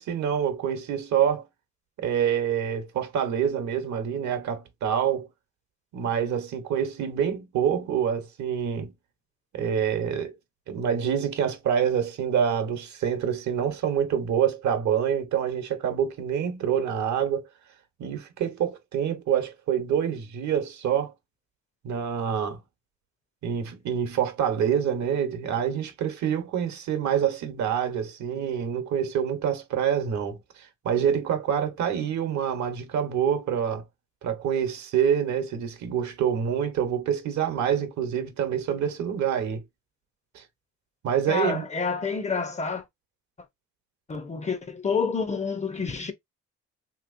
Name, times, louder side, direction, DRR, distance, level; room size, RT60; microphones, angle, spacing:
voice 1, 0.0-1.5 2.0-5.3 5.9-8.9 9.5-10.3 10.7-17.5 18.0-21.1 21.8-22.6 23.4-33.8 34.2-39.6 40.3-40.4 41.0-41.7, right 8 dB, 70° right, 0.9 m, -26 dB
voice 2, 41.3-42.8 44.1-46.1, left 5 dB, 25° left, 0.5 m, -28 dB
3.0 x 2.9 x 2.5 m
cardioid pair, 90°, 30 cm